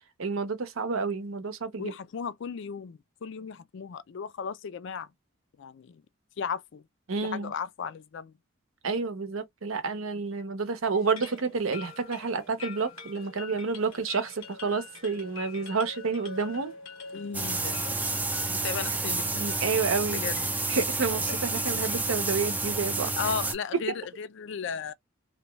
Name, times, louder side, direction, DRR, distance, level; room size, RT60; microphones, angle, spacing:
voice 1, 0.2-1.9 7.1-7.5 8.8-16.7 19.3-20.2 20.7-23.1 23.7-23.8, right 4 dB, 90° right, 0.7 m, -29 dB
voice 2, 1.8-5.1 5.6-6.0 6.4-6.8 7.2-8.3 17.1-19.5 20.1-20.5 23.1-24.9, left 6 dB, 60° left, 0.4 m, -36 dB
sound 1, 10.9-22.3, left 4 dB, 80° left, 0.9 m, -46 dB
sound 2, 17.3-23.5, right 3 dB, 10° right, 0.3 m, -30 dB
2.8 x 2.2 x 3.0 m
head